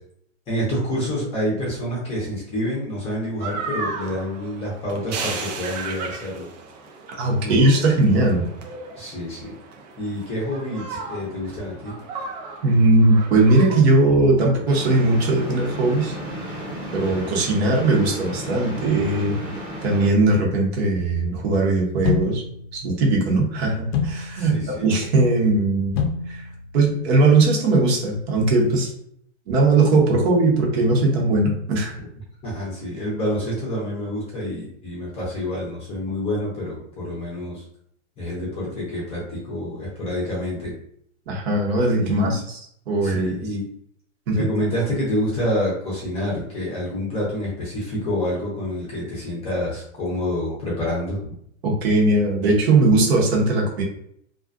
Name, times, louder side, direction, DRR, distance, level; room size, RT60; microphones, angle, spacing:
voice 1, 0.5-6.5 7.4-7.9 9.0-9.5 10.0-11.9 24.3-24.9 32.4-37.6 38.2-40.7 42.0-42.4 43.0-43.7 44.3-51.2, left 1 dB, 15° left, -5 dB, 0.6 m, -27 dB
sound 1, 3.4-13.8, right 4 dB, 35° right, 0.4 m, -35 dB
voice 2, 7.1-8.5 12.6-16.1 16.5-16.6 16.9-19.4 19.8-22.4 22.7-26.0 26.3-26.4 26.7-28.9 29.5-31.9 41.3-42.6 42.9-43.4 44.3-44.5 51.6-53.8, right 2 dB, 55° right, -1 dB, 0.9 m, -19 dB
sound 2, 14.7-20.1, equal, 10° right, 0.9 m, -33 dB
sound 3, 22.0-28.1, left 5 dB, 55° left, 0.5 m, -30 dB
2.4 x 2.3 x 2.4 m, 0.69 s
hypercardioid pair, 145°, 38 cm